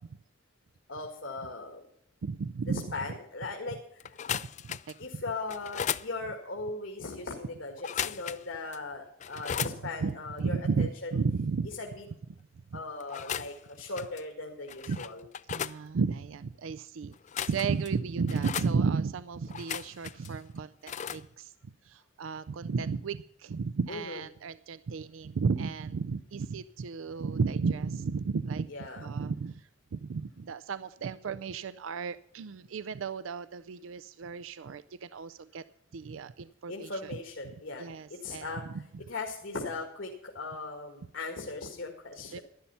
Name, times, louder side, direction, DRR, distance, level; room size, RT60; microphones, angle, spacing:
voice 1, 0.9-1.8 2.9-4.2 5.0-11.1 11.8-12.0 12.7-15.2 20.2-20.3 23.9-24.2 28.7-29.1 36.7-38.6 39.1-42.4, left 3 dB, 75° left, 2 dB, 1.8 m, -39 dB
voice 2, 2.2-2.8 4.3-5.2 10.0-11.7 12.7-12.8 14.9-15.0 15.5-17.1 17.5-21.5 21.8-28.7 29.0-35.6 35.9-37.1 37.4-38.5 38.7-38.8 42.3-42.4, right 5 dB, 85° right, 15 dB, 0.4 m, -33 dB
sound 1, 4.0-5.0 5.5-6.1 7.8-8.5 8.7-8.8 9.2-9.8 13.0-13.6 13.9-14.2 14.7-15.8 17.1-17.9 18.3-18.7 19.5-20.3 20.9-21.2, left 9 dB, 40° left, 0.4 m, -36 dB
12.0 x 11.5 x 5.6 m, 0.71 s
head